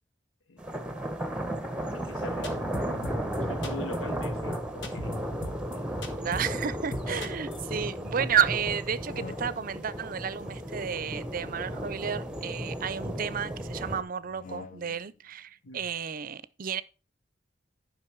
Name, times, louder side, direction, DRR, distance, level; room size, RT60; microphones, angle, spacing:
sound 1, 0.6-14.0, right 1 dB, 5° right, 0.9 m, -34 dB
voice 1, 1.9-5.3 5.7-6.0 7.1-7.3 8.2-8.3 15.6-15.9, left 2 dB, 90° left, 0.8 m, -43 dB
sound 2, 2.4-3.4 3.6-4.0 4.2-4.3 4.5-4.6 4.8-5.2 5.4-5.8 6.0-6.7 6.9-7.7, left 1 dB, 65° left, 1.5 m, -37 dB
voice 2, 6.2-16.8, right 7 dB, 45° right, 0.5 m, -31 dB
sound 3, 8.8-9.9 11.2-12.9 14.2-15.2, left 4 dB, 40° left, 0.5 m, -48 dB
11.0 x 5.4 x 4.6 m
head